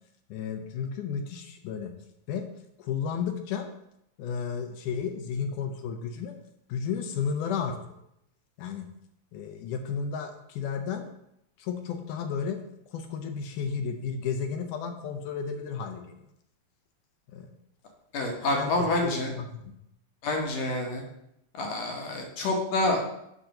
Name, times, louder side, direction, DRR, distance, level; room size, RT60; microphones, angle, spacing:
voice 1, 0.3-1.9 2.3-2.4 2.8-3.7 4.2-6.4 6.7-7.8 8.6-8.9 9.3-11.1 11.6-12.6 12.9-16.2 17.3-17.5 18.4-19.7, left 6 dB, 75° left, 6 dB, 2.1 m, -33 dB
voice 2, 18.1-19.3 20.2-21.0 21.5-23.1, left 2 dB, 60° left, 1 dB, 2.0 m, -27 dB
7.4 x 3.8 x 6.4 m, 0.80 s
omnidirectional pair, 3.9 m